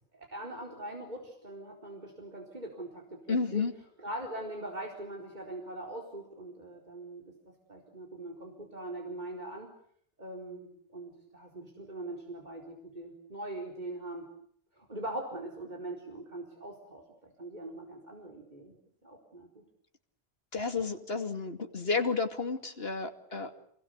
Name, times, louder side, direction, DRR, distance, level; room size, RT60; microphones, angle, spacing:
voice 1, 0.1-3.6 4.0-7.2 7.7-9.7 10.2-14.3 14.7-18.7 19.0-19.6 23.3-23.4, right 1 dB, 45° right, 0 dB, 4.6 m, -42 dB
voice 2, 3.3-3.7 20.5-23.5, left 4 dB, 75° left, 6 dB, 2.8 m, -31 dB
28.5 x 21.0 x 8.1 m, 0.65 s
omnidirectional pair, 1.0 m